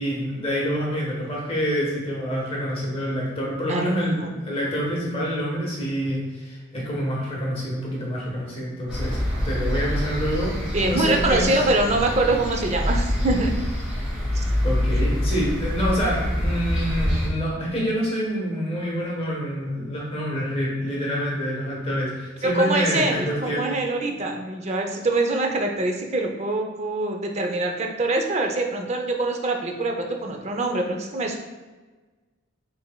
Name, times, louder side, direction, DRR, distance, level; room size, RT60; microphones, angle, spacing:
voice 1, 0.0-9.2 9.4-11.6 14.6-23.6, equal, 30° left, -4 dB, 1.0 m, -27 dB
voice 2, 3.7-4.3 10.7-13.5 14.3-14.4 22.4-31.4, right 2 dB, 35° right, 3 dB, 0.5 m, -24 dB
sound 1, 8.9-17.3, equal, 5° right, 1.1 m, -25 dB
5.5 x 3.3 x 2.2 m, 1.3 s
head